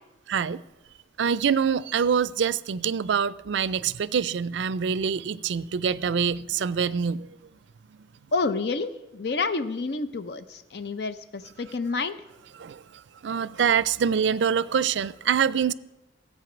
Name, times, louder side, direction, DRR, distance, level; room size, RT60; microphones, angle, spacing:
voice 1, 0.3-0.6 1.2-7.3 12.6-12.8 13.2-15.7, right 7 dB, 75° right, 0.4 m, -25 dB
voice 2, 8.3-12.2, left 3 dB, 60° left, 0.5 m, -29 dB
14.0 x 8.3 x 6.0 m
head